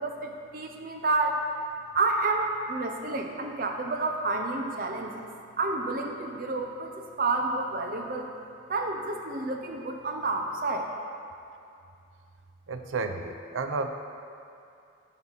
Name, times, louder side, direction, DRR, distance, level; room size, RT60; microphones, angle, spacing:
voice 1, 0.0-1.4 1.9-5.3 5.6-8.3 8.7-10.9, right 3 dB, 45° right, 2 dB, 0.8 m, -29 dB
voice 2, 12.7-13.9, right 3 dB, 85° right, 6 dB, 0.6 m, -31 dB
11.0 x 5.6 x 4.1 m, 2.5 s
head